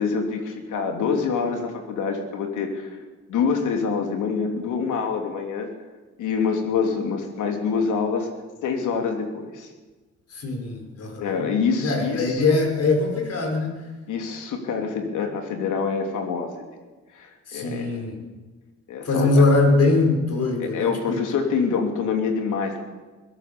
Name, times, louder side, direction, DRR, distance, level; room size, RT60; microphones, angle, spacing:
voice 1, 0.0-2.9 3.3-5.7 6.2-8.3 8.6-9.7 11.2-12.4 14.1-16.7 17.1-17.9 18.9-19.4 20.6-22.9, left 5 dB, 80° left, 4 dB, 3.4 m, -26 dB
voice 2, 10.3-11.5 11.8-13.8 17.5-18.2 19.1-21.2, left 3 dB, 55° left, 3 dB, 5.8 m, -22 dB
22.0 x 17.0 x 7.1 m, 1.3 s
cardioid pair, 90°, 30 cm